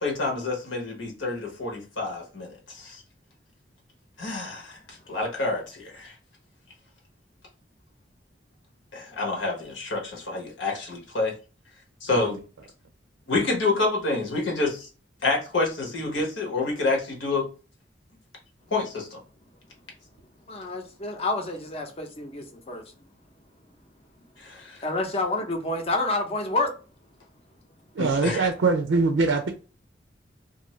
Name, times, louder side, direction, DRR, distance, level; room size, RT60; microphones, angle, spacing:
voice 1, 0.0-3.0 4.2-6.2 8.9-11.4 12.0-12.4 13.3-14.9 15.2-17.5 18.7-19.2 24.4-24.8 28.0-28.4, left 3 dB, 80° left, 1.1 m, -28 dB
voice 2, 20.5-22.8 24.8-26.7, left 2 dB, 30° left, 0.6 m, -28 dB
voice 3, 28.0-29.5, right 4 dB, 85° right, 0.4 m, -23 dB
2.6 x 2.5 x 3.0 m
head